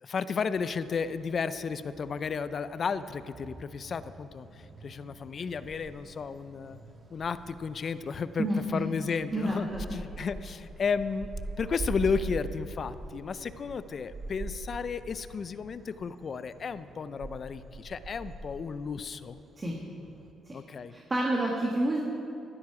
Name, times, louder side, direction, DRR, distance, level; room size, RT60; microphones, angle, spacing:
voice 1, 0.0-6.8 7.1-11.3 11.6-19.4 20.5-21.0, left 5 dB, 50° left, 14 dB, 0.5 m, -33 dB
sound 1, 0.5-20.3, right 2 dB, 45° right, 1.5 m, -44 dB
voice 2, 8.4-8.9 9.3-10.0 19.6-19.7 20.5-20.6 20.9-22.0, right 1 dB, 30° right, -2 dB, 1.7 m, -29 dB
14.0 x 12.5 x 4.8 m, 2.9 s
cardioid pair, 90°, 0 cm